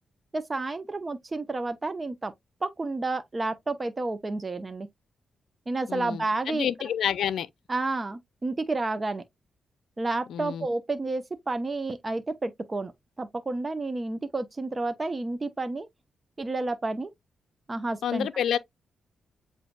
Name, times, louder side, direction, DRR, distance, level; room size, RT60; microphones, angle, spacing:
voice 1, 0.3-2.3 2.6-4.9 5.7-6.7 7.7-9.2 10.0-12.9 13.2-15.9 16.4-17.1 17.7-18.3, right 2 dB, 35° right, 0.8 m, -30 dB
voice 2, 5.9-7.5 10.3-10.7 18.0-18.6, left 9 dB, 80° left, 0.4 m, -29 dB
7.7 x 2.7 x 2.3 m
supercardioid pair, 55°, 0 cm